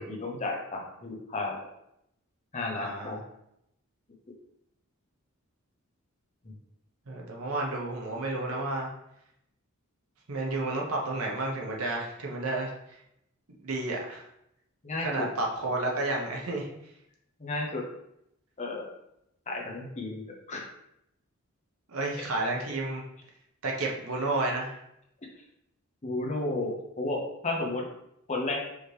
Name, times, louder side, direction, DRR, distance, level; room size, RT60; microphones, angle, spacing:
voice 1, 0.0-1.7 2.5-3.2 6.4-6.5 14.8-15.3 17.4-17.8 18.6-18.9 19.5-20.6 26.0-27.8 28.3-28.6, left 2 dB, 30° left, 0 dB, 0.7 m, -33 dB
voice 2, 2.7-3.2 7.1-8.9 10.3-13.0 13.6-14.2 15.0-16.7 21.9-23.0 23.6-24.7, right 2 dB, 70° right, -1 dB, 0.9 m, -31 dB
4.8 x 3.0 x 3.2 m, 0.80 s
head